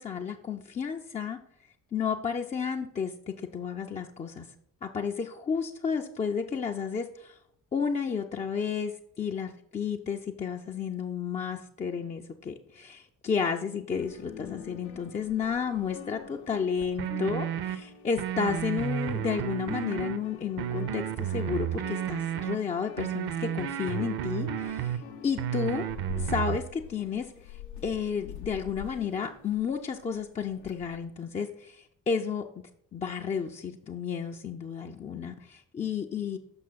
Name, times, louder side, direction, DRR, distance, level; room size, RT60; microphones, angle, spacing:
voice 1, 0.0-1.4 1.9-4.5 4.8-7.4 7.7-25.9 26.2-32.5 32.9-36.4, left 6 dB, 15° left, 2 dB, 0.3 m, -32 dB
sound 1, 13.9-19.3 19.5-31.0, left 7 dB, 85° left, 0.7 m, -46 dB
sound 2, 17.0-17.8 18.2-20.2 20.6-22.6 23.0-25.0 25.4-26.6, right 10 dB, 50° right, 0.7 m, -32 dB
6.0 x 5.7 x 4.0 m, 0.68 s
figure-of-eight pair, 40°, 49 cm